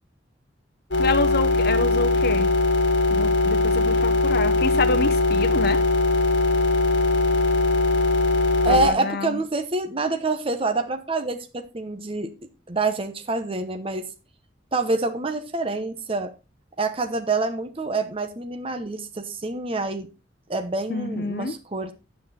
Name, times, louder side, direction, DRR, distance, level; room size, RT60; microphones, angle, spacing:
sound 1, 0.9-8.9, left 2 dB, 75° left, 1.8 m, -20 dB
voice 1, 1.0-2.5 3.1-5.8 8.7-9.4 20.9-21.5, left 3 dB, 55° left, 7 dB, 0.8 m, -27 dB
voice 2, 8.6-12.3 12.7-14.1 14.7-16.3 16.8-20.1 20.5-21.9, right 3 dB, 30° right, 7 dB, 0.9 m, -26 dB
10.0 x 8.5 x 4.2 m, 0.29 s
head